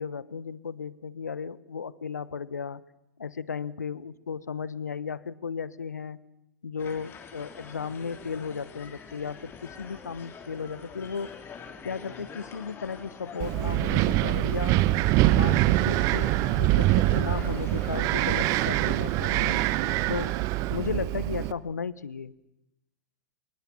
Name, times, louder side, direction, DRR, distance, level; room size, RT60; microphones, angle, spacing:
voice 1, 0.0-2.8 3.2-6.2 6.6-11.3 11.8-14.8 15.3-19.6 20.1-20.4 20.7-22.3, left 6 dB, 75° left, 20 dB, 1.0 m, -35 dB
sound 1, 6.8-20.0, left 6 dB, 25° left, 3.6 m, -46 dB
Wind, 13.4-21.5, right 16 dB, 35° right, 0.9 m, -24 dB
25.5 x 21.0 x 7.2 m, 0.86 s
figure-of-eight pair, 100°, 9 cm